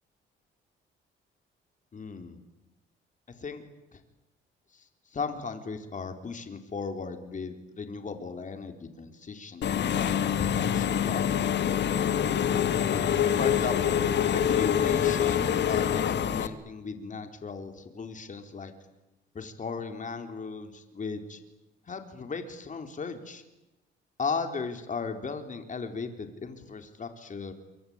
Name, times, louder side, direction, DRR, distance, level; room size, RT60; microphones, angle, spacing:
voice 1, 1.9-2.4 3.3-3.6 3.9-4.0 4.7-4.9 5.1-11.6 12.9-14.0 14.3-18.7 19.3-21.4 21.9-23.4 24.2-27.5, left 5 dB, 40° left, 7 dB, 3.9 m, -37 dB
Engine / Mechanisms, 9.6-16.5, left 9 dB, 60° left, 1.9 m, -25 dB
27.0 x 24.5 x 8.9 m, 0.95 s
cardioid pair, 90°, 20 cm